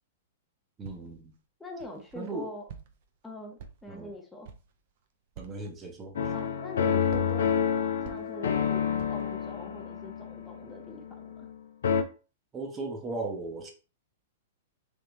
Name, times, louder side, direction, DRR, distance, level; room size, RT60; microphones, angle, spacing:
voice 1, 0.8-1.3 2.1-2.5 3.9-4.1 5.4-6.3 12.5-13.7, right 3 dB, 25° right, 2 dB, 0.8 m, -37 dB
Walk footsteps, 0.8-1.3 1.8-2.3 2.7-3.2 3.6-4.1 4.4-4.8 5.3-5.7 6.2-6.7 7.1-8.6 9.0-9.4, right 7 dB, 55° right, 0.5 m, -48 dB
voice 2, 1.6-2.6 3.2-4.5 6.3-7.5 8.0-8.8 9.1-11.5, left 1 dB, 5° left, 1 dB, 0.8 m, -43 dB
sound 1, 6.2-11.5 11.8-12.0, left 7 dB, 75° left, 0.4 m, -29 dB
3.5 x 2.6 x 2.9 m, 0.34 s
hypercardioid pair, 110°, 0 cm